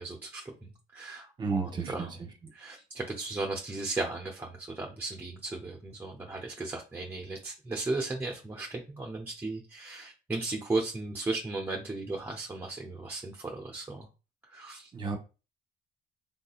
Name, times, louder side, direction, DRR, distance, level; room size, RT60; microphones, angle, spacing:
voice 1, 0.0-2.1 2.5-14.1 14.5-14.9, right 3 dB, 10° right, 0.5 m, -36 dB
voice 2, 1.4-2.5 14.9-15.2, right 4 dB, 25° right, 0.9 m, -33 dB
3.6 x 2.6 x 2.4 m
cardioid pair, 110°, 17 cm